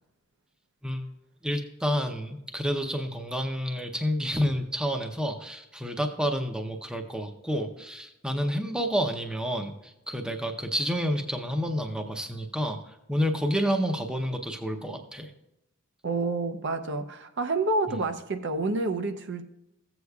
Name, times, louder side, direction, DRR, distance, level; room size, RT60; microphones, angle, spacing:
voice 1, 1.4-15.3 17.9-18.0, equal, 5° right, 4 dB, 0.6 m, -29 dB
voice 2, 16.0-19.4, right 3 dB, 50° right, 7 dB, 0.6 m, -28 dB
15.0 x 8.0 x 2.3 m, 0.88 s
head